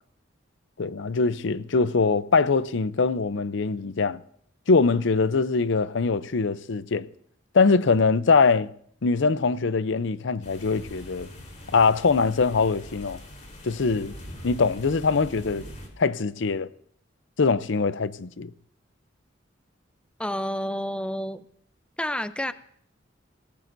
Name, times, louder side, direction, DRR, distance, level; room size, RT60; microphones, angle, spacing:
voice 1, 0.8-4.2 4.7-7.1 7.5-8.7 9.0-11.3 11.7-13.2 13.6-14.1 14.4-15.6 16.0-16.7 17.4-18.5, left 4 dB, 70° left, 0.6 m, -22 dB
sound 1, 10.4-15.9, equal, 40° left, 4.0 m, -43 dB
voice 2, 20.2-21.4 22.0-22.5, equal, 5° left, 0.6 m, -29 dB
25.0 x 18.5 x 2.7 m
head